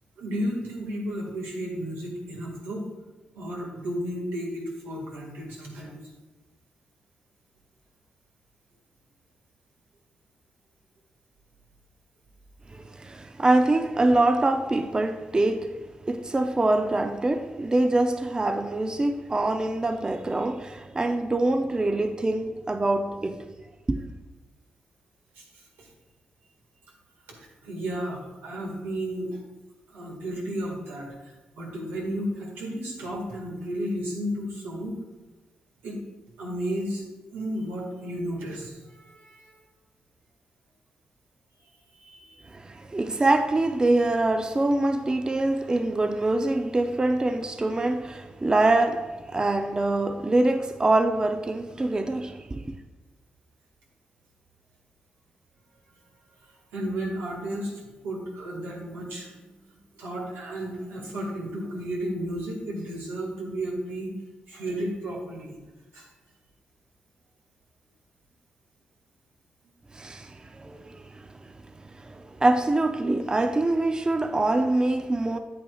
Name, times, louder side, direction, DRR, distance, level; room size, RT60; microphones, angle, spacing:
voice 1, 0.2-2.9 3.3-6.0 25.4-25.9 27.3-27.4 27.6-29.4 29.9-35.0 35.8-36.0 36.4-37.0 37.3-39.6 42.0-42.5 56.7-59.5 60.0-64.2 64.5-65.6 65.9-66.1, equal, 90° right, 1.7 m, -33 dB
voice 2, 12.7-15.8 16.1-23.5 23.9-24.0 42.5-52.8 69.9-71.6 71.9-75.4, right 2 dB, 25° right, 0.5 m, -24 dB
8.5 x 8.5 x 2.3 m
cardioid pair, 65°, 3 cm